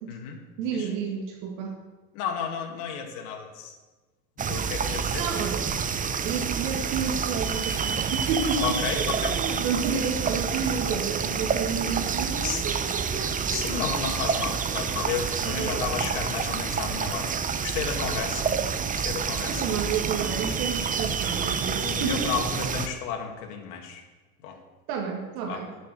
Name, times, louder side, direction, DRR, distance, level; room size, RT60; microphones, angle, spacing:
voice 1, 0.1-0.4 0.7-0.9 2.1-3.8 4.5-5.2 8.6-9.4 12.4-12.6 13.5-18.6 18.9-20.0 21.8-24.0 24.4-24.6 25.5-25.6, left 7 dB, 65° left, 2 dB, 2.2 m, -32 dB
voice 2, 0.6-1.8 5.1-5.7 6.2-13.8 15.4-15.9 19.5-22.3 24.9-25.7, right 6 dB, 65° right, 1 dB, 2.2 m, -31 dB
sound 1, 4.4-22.9, right 6 dB, 20° right, 0.7 m, -28 dB
11.5 x 6.6 x 6.7 m, 1.2 s
hypercardioid pair, 95°, 45 cm